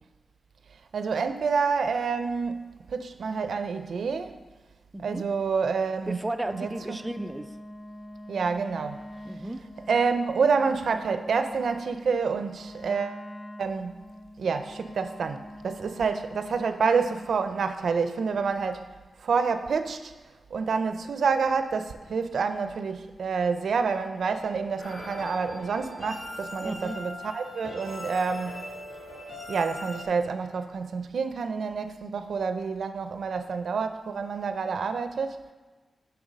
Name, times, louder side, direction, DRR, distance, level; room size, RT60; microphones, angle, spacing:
voice 1, 0.9-4.3 5.0-6.2 6.5-7.0 8.3-9.0 9.9-13.2 13.6-13.9 14.4-18.9 19.2-20.1 20.5-28.7 29.5-35.4, right 5 dB, 75° right, 0.5 m, -28 dB
voice 2, 6.1-7.5 9.2-9.6 26.6-27.0, right 1 dB, 15° right, 0.3 m, -34 dB
Wind instrument woodwind instrument, 6.3-17.4, left 1 dB, 45° left, 0.6 m, -44 dB
sound 1, 24.8-30.0, left 1 dB, 80° left, 2.3 m, -40 dB
7.1 x 6.0 x 5.1 m
wide cardioid pair, 135°, 0 cm